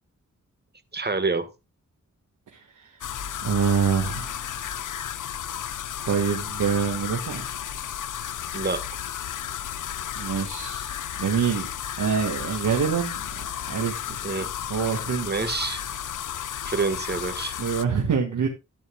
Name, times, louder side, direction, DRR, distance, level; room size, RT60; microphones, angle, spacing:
voice 1, 0.9-1.5 8.5-8.8 14.2-14.5 15.3-15.8 16.6-17.5, right 4 dB, 35° right, 10 dB, 1.6 m, -27 dB
voice 2, 2.5-3.0 3.4-4.7 6.0-7.5 10.2-10.9 11.2-11.7 12.0-13.2 13.7-14.2 14.7-15.3 17.6-18.5, right 6 dB, 85° right, 3 dB, 1.9 m, -26 dB
sound 1, 3.0-17.9, left 10 dB, 85° left, 0.7 m, -33 dB
14.0 x 9.3 x 2.4 m, 0.25 s
wide cardioid pair, 125°, 30 cm